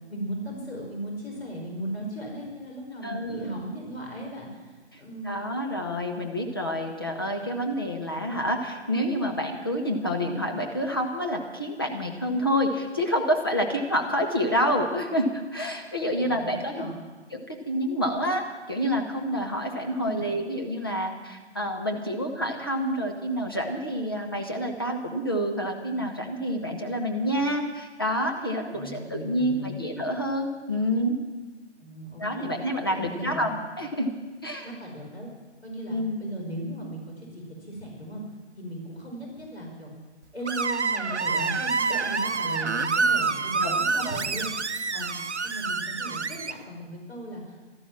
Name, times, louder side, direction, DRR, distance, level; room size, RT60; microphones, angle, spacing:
voice 1, 0.1-5.4 16.2-16.9 20.0-20.3 28.7-29.8 31.8-32.5 32.8-33.5 34.6-35.3 35.6-38.2 38.6-39.9 40.3-45.1 45.4-47.8, right 1 dB, 60° left, -1 dB, 5.5 m, -37 dB
voice 2, 3.0-3.5 5.2-16.8 17.3-31.2 32.2-34.1 34.4-34.7 35.9-36.2 43.6-44.2, equal, 20° left, 2 dB, 0.9 m, -28 dB
Screech, 40.5-46.5, right 4 dB, 70° right, 0.8 m, -27 dB
13.0 x 12.0 x 7.5 m, 1.3 s
figure-of-eight pair, 160°, 36 cm